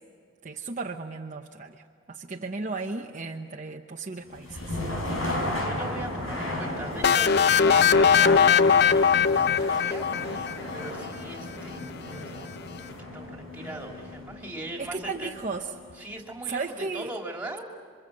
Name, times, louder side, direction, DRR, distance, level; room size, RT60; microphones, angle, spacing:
voice 1, 0.4-4.8 14.8-15.7 16.5-17.1, right 4 dB, 40° right, 2 dB, 0.9 m, -35 dB
sound 1, 4.3-16.1, left 1 dB, 90° left, 6.0 m, -35 dB
voice 2, 5.0-12.5 13.0-15.3 16.0-17.7, right 1 dB, 10° right, 1 dB, 3.1 m, -40 dB
sound 2, 7.0-10.8, left 6 dB, 55° left, 0.6 m, -20 dB
28.0 x 25.5 x 7.6 m, 2.3 s
head